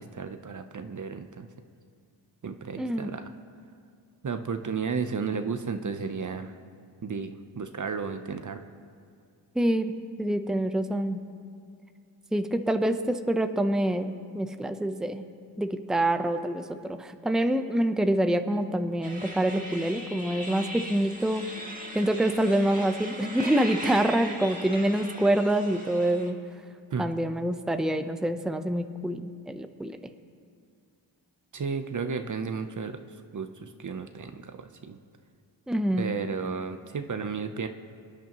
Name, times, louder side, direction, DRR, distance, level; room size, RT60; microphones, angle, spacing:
voice 1, 0.0-1.5 2.4-3.3 4.2-6.6 7.0-8.6 26.9-27.0 31.5-33.0 33.3-35.0 36.0-37.7, right 5 dB, 40° right, 8 dB, 0.8 m, -33 dB
voice 2, 2.8-3.1 9.5-9.9 10.2-11.2 12.3-15.2 15.6-21.5 21.9-26.4 27.0-30.0 35.7-36.1, right 1 dB, ahead, 8 dB, 0.8 m, -26 dB
sound 1, 19.0-26.3, right 1 dB, 15° right, 2.3 m, -39 dB
24.5 x 10.0 x 3.1 m, 2.3 s
cardioid pair, 50°, 46 cm